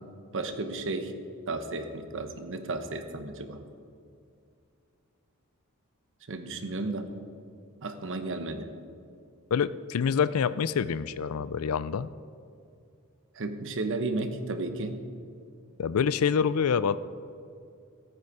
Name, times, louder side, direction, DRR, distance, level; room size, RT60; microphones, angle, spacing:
voice 1, 0.3-1.1 1.5-3.6 6.3-7.1 7.8-8.7 13.3-15.0, right 2 dB, 60° right, 8 dB, 1.0 m, -33 dB
voice 2, 9.5-12.1 15.8-17.0, left 6 dB, 80° left, 16 dB, 0.4 m, -26 dB
14.5 x 9.0 x 4.8 m, 2.4 s
head